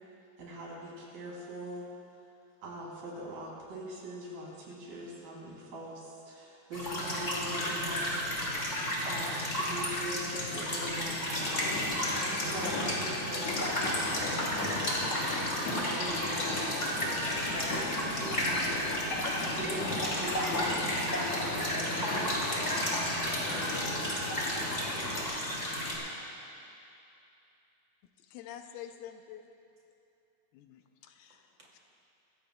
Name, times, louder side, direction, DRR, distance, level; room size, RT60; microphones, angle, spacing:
voice 1, 0.4-1.9 2.6-8.4 9.0-11.6 12.4-14.8 15.6-17.3 17.5-22.4 24.3-24.8, right 1 dB, 75° right, -4 dB, 4.5 m, -42 dB
sound 1, 6.7-25.9, left 1 dB, 25° left, 2.2 m, -32 dB
sound 2, 11.3-25.3, left 2 dB, 55° left, 2.4 m, -37 dB
voice 2, 24.4-25.7 26.0-26.6 31.6-31.7, right 1 dB, 35° right, -3 dB, 2.6 m, -55 dB
voice 3, 28.3-29.5 30.5-31.4, left 10 dB, 80° left, 6 dB, 2.3 m, -47 dB
23.5 x 15.5 x 2.3 m, 2.7 s
omnidirectional pair, 4.2 m